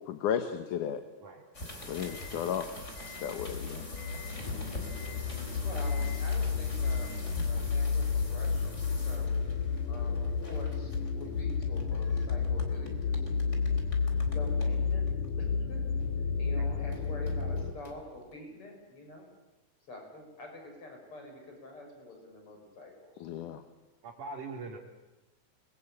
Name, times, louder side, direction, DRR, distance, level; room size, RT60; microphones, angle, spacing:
voice 1, 0.1-1.0 1.9-2.7 3.2-3.9 23.2-23.6, left 9 dB, 85° left, 8 dB, 2.7 m, -33 dB
sound 1, 1.5-16.4 16.9-18.3, left 2 dB, 20° left, 4.1 m, -46 dB
voice 2, 2.3-2.6 24.0-24.8, right 3 dB, 75° right, -3 dB, 4.2 m, -42 dB
sound 2, 3.3-17.7, left 5 dB, 65° left, 3.4 m, -31 dB
voice 3, 5.6-9.6 9.9-13.2 14.3-15.1 15.4-16.0 16.4-19.3 19.9-23.3, left 2 dB, 45° left, 2 dB, 7.3 m, -47 dB
29.5 x 22.5 x 8.6 m, 1.0 s
omnidirectional pair, 3.5 m